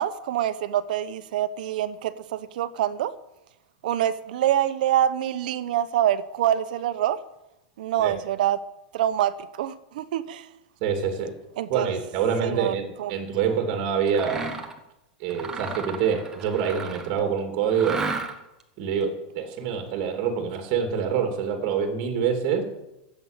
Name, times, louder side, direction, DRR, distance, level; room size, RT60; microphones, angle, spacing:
voice 1, 0.0-3.1 3.8-7.2 7.8-8.6 8.9-10.5 11.6-11.9 12.4-13.6, right 11 dB, 65° right, 1.0 m, -26 dB
voice 2, 10.8-11.3 11.7-14.5 15.2-18.0 18.8-22.6, right 7 dB, 35° right, 2.6 m, -26 dB
Mechanisms, 14.1-14.8 15.3-17.2 17.7-18.6, right 4 dB, 10° right, 1.1 m, -33 dB
13.0 x 7.9 x 8.9 m
supercardioid pair, 170°, 5 cm